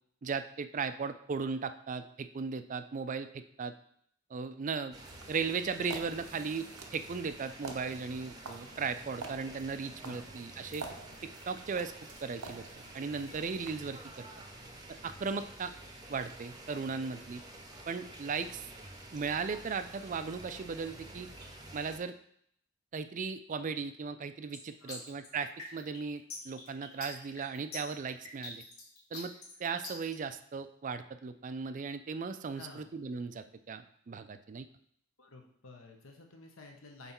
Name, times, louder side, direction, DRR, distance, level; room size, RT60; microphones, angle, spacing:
voice 1, 0.2-3.7 4.3-5.0 5.3-6.7 6.9-10.8 11.2-11.9 12.2-12.6 12.9-14.3 15.0-15.7 16.1-17.4 17.9-18.6 19.1-21.3 21.7-22.2 22.9-28.6 29.1-29.3 29.6-34.7, right 5 dB, 35° right, 10 dB, 0.4 m, -37 dB
sound 1, 4.9-22.0, right 1 dB, 20° right, 0.7 m, -50 dB
sound 2, 5.0-13.7, right 4 dB, 85° right, 0.8 m, -49 dB
voice 2, 10.0-10.3 13.1-13.5 24.8-25.1 32.5-32.9 35.2-37.1, left 3 dB, 65° left, 2 dB, 1.1 m, -52 dB
sound 3, 24.5-30.1, left 3 dB, 80° left, 1.6 m, -44 dB
5.6 x 4.0 x 4.3 m, 0.67 s
head